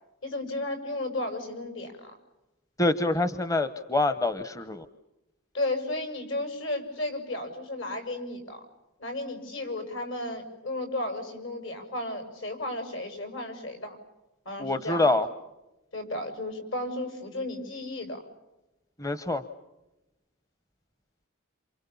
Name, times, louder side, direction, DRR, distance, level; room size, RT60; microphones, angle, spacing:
voice 1, 0.2-2.1 5.5-8.6 9.0-14.0 14.5-15.2 15.9-18.2, left 1 dB, 65° left, 7 dB, 7.1 m, -34 dB
voice 2, 2.8-4.9 14.6-15.3 19.0-19.4, left 2 dB, 15° left, 12 dB, 0.9 m, -26 dB
28.5 x 27.5 x 7.1 m, 0.98 s
head